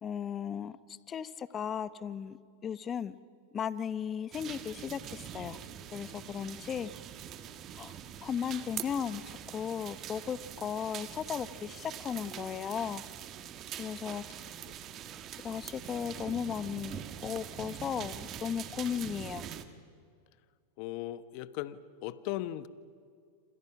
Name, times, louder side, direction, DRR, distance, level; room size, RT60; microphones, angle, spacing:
voice 1, 0.0-0.8 1.1-2.4 2.6-3.2 3.5-5.6 5.9-6.9 7.8-7.9 8.2-9.2 9.5-13.0 13.8-14.2 15.4-19.4, left 8 dB, 30° left, 15 dB, 1.1 m, -36 dB
sound 1, 4.3-19.7, right 10 dB, 40° right, 1.8 m, -44 dB
voice 2, 20.8-22.7, left 14 dB, 55° left, 15 dB, 1.1 m, -38 dB
28.5 x 26.5 x 6.0 m, 2.3 s
hypercardioid pair, 110°, 0 cm